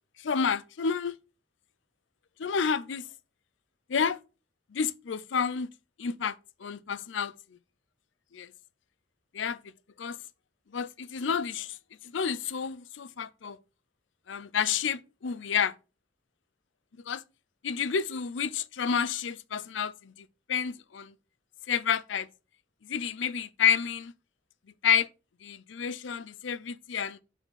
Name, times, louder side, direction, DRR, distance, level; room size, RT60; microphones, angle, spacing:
voice 1, 0.2-1.2 2.4-3.1 3.9-4.2 4.7-5.7 6.0-7.3 8.3-8.5 9.3-9.6 10.0-10.2 10.7-11.8 12.0-13.6 14.3-15.7 17.1-17.2 17.6-21.1 21.7-22.3 22.8-24.1 24.8-25.1 25.4-27.2, left 7 dB, 85° left, 0.5 m, -30 dB
7.0 x 4.3 x 5.5 m
head